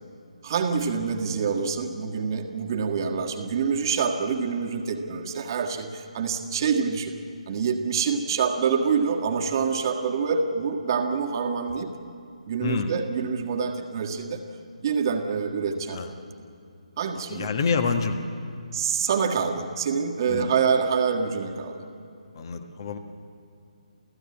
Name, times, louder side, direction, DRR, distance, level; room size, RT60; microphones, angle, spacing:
voice 1, 0.4-7.1 7.5-11.9 12.5-14.4 14.8-16.0 17.0-17.5 18.7-21.8, right 6 dB, 35° right, 3 dB, 1.7 m, -26 dB
voice 2, 12.6-12.9 15.9-16.1 17.3-18.2 20.3-20.5 22.3-23.0, left 5 dB, 35° left, 8 dB, 1.4 m, -27 dB
28.5 x 15.5 x 8.6 m, 2.5 s
figure-of-eight pair, 140°, 4 cm